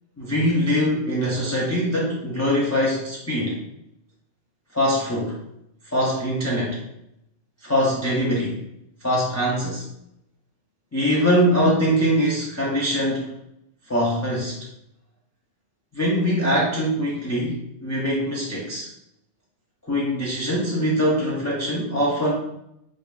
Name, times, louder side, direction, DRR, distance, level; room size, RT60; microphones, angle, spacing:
voice 1, 0.2-3.6 4.7-5.3 5.9-6.8 7.6-8.6 9.0-9.8 10.9-13.3 13.9-14.6 15.9-18.9 19.9-22.3, equal, 25° left, -6 dB, 0.4 m, -22 dB
4.9 x 2.4 x 2.3 m, 0.81 s
omnidirectional pair, 1.3 m